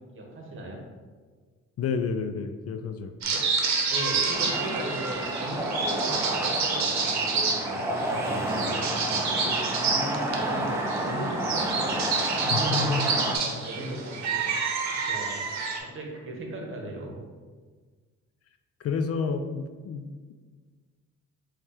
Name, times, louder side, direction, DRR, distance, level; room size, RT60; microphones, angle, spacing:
voice 1, 0.1-0.8 3.3-3.5 3.9-8.8 9.2-15.5 15.8-17.3, right 1 dB, 45° right, 0 dB, 1.1 m, -37 dB
voice 2, 1.8-3.1 12.5-13.1 18.8-20.3, left 5 dB, 55° left, 7 dB, 0.4 m, -30 dB
sound 1, 3.2-15.8, right 4 dB, 65° right, 0.9 m, -29 dB
sound 2, 4.3-13.4, right 1 dB, 10° right, 0.6 m, -30 dB
4.2 x 2.4 x 4.7 m, 1.5 s
cardioid pair, 90°, 30 cm